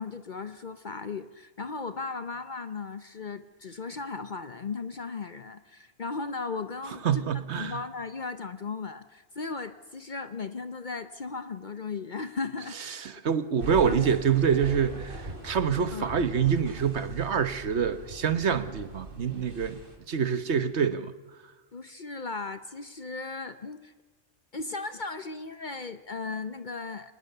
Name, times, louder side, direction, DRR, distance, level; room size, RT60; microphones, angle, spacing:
voice 1, 0.0-7.3 7.5-12.8 13.8-14.0 15.9-16.1 21.7-23.9 24.5-27.1, left 4 dB, 45° left, 11 dB, 0.9 m, -36 dB
voice 2, 7.0-7.8 12.9-19.8 20.1-21.1, right 7 dB, 70° right, 13 dB, 1.4 m, -26 dB
sound 1, 13.6-20.0, right 2 dB, 50° right, 3.1 m, -41 dB
25.5 x 19.0 x 6.7 m, 1.2 s
omnidirectional pair, 1.2 m